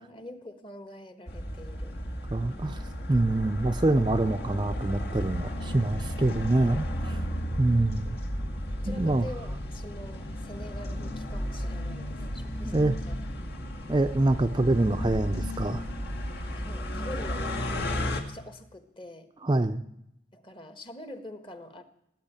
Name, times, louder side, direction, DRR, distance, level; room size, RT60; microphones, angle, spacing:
voice 1, 0.0-2.0 2.4-2.7 6.1-6.2 8.8-13.2 13.5-13.7 16.4-19.3 20.3-21.8, left 1 dB, 30° left, 9 dB, 1.5 m, -45 dB
sound 1, 1.3-18.2, equal, 60° left, 2.0 m, -34 dB
voice 2, 2.3-2.8 3.1-7.2 7.6-8.2 8.9-9.3 12.7-13.0 13.9-15.8 19.4-19.8, right 2 dB, 25° right, 7 dB, 0.5 m, -25 dB
sound 2, 13.1-18.1, equal, 75° left, 2.8 m, -50 dB
17.5 x 9.1 x 8.9 m, 0.81 s
head